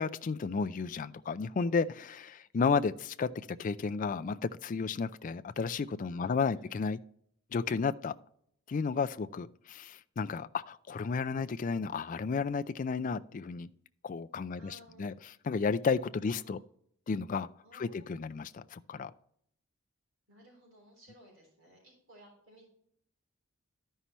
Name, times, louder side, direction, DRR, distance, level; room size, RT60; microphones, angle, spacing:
voice 1, 0.0-7.0 7.5-8.1 8.7-13.7 14.0-15.1 15.4-16.6 17.1-19.1, left 5 dB, 40° left, 12 dB, 0.3 m, -33 dB
voice 2, 6.2-6.7 14.6-15.1 15.7-15.8 16.2-16.6 17.6-18.2 20.3-22.7, right 1 dB, 65° right, -2 dB, 3.6 m, -58 dB
13.0 x 5.6 x 3.0 m, 0.70 s
head